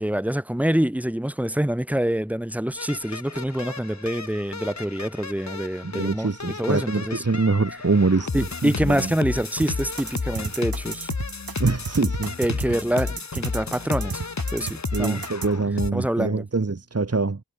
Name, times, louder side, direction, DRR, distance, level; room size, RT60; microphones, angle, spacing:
voice 1, 0.0-7.2 8.3-11.1 12.4-14.2 14.5-15.2 15.9-16.4, right 1 dB, 5° right, 1.5 m, -26 dB
sound 1, 2.8-15.9, left 4 dB, 50° left, 1.9 m, -32 dB
voice 2, 5.8-8.3 8.6-9.1 11.6-12.6 14.9-17.4, right 3 dB, 40° right, 1.9 m, -24 dB
sound 2, 9.6-15.5, right 5 dB, 70° right, 2.1 m, -33 dB
wide cardioid pair, 55°, 37 cm